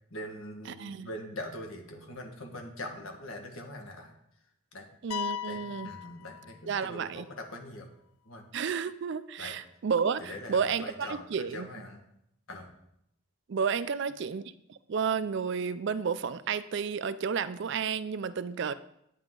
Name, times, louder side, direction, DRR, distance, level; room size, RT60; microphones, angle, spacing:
voice 1, 0.1-4.1 4.7-4.9 5.5-7.9 8.2-8.4 9.4-9.6 10.2-12.0 12.5-12.8, left 1 dB, 70° left, 3 dB, 1.6 m, -42 dB
voice 2, 0.8-1.1 5.0-5.9 6.7-7.3 8.5-11.7 13.5-14.4 14.7-18.7, right 6 dB, 55° right, 15 dB, 0.4 m, -31 dB
sound 1, 5.1-7.0, left 10 dB, 90° left, 0.5 m, -38 dB
9.2 x 8.8 x 3.8 m, 0.77 s
head